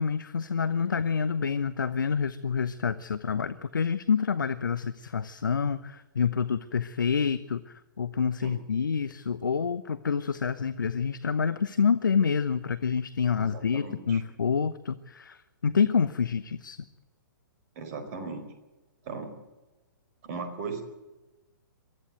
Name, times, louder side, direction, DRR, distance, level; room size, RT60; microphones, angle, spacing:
voice 1, 0.0-16.8, left 6 dB, 70° left, 14 dB, 0.9 m, -27 dB
voice 2, 13.4-14.2 17.7-18.5 19.0-19.3 20.2-20.8, right 4 dB, 40° right, 6 dB, 4.7 m, -37 dB
23.5 x 14.0 x 9.2 m, 1.1 s
figure-of-eight pair, 120°, 11 cm